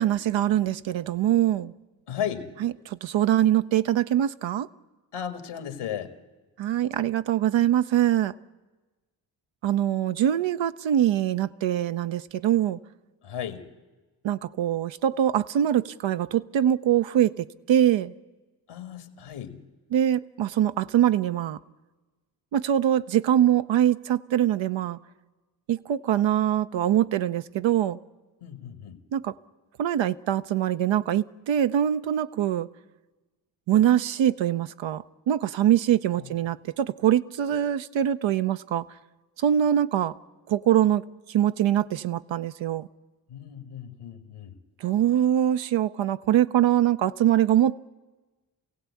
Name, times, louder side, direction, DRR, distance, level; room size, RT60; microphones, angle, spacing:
voice 1, 0.0-1.7 2.6-4.7 6.6-8.3 9.6-12.8 14.2-18.1 19.9-21.6 22.5-25.0 25.7-28.0 29.1-29.3 29.8-32.7 33.7-38.9 39.4-40.1 40.5-41.0 41.3-42.9 44.8-47.8, right 11 dB, 65° right, 0.8 m, -23 dB
voice 2, 2.1-2.5 5.1-6.2 13.2-13.7 18.7-19.6 28.4-29.0 36.2-36.4 43.3-44.6, left 9 dB, 80° left, 1.9 m, -35 dB
27.0 x 16.5 x 8.4 m
supercardioid pair, 45°, 50 cm